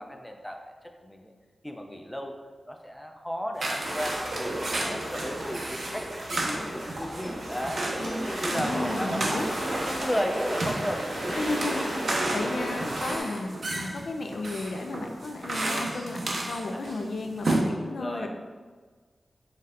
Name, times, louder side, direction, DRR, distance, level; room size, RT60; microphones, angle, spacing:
voice 1, 0.0-1.3 1.6-2.3 2.7-7.8 8.1-11.3 16.7-16.8 18.0-18.3, equal, 5° left, 3 dB, 0.4 m, -34 dB
sound 1, 3.6-17.0 17.3-17.6, right 2 dB, 60° right, 0.5 m, -33 dB
sound 2, 3.8-13.2, right 1 dB, 80° right, 1.1 m, -33 dB
voice 2, 8.0-9.5 11.3-18.3, left 2 dB, 80° left, 4 dB, 0.3 m, -34 dB
4.1 x 3.2 x 2.4 m, 1.4 s
wide cardioid pair, 115°, 0 cm